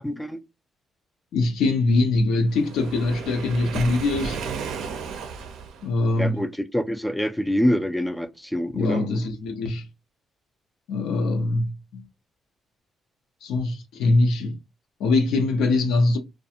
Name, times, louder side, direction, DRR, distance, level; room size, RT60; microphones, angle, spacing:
voice 1, 0.0-0.4 6.2-9.1, equal, 5° left, 0.3 m, -25 dB
voice 2, 1.3-4.4 5.8-6.4 8.7-9.9 10.9-12.1 13.4-14.6 15.0-16.2, left 2 dB, 85° left, 0.5 m, -23 dB
Waves surf, 2.5-5.9, right 5 dB, 85° right, 0.5 m, -33 dB
2.4 x 2.2 x 2.7 m
cardioid pair, 90°, 0 cm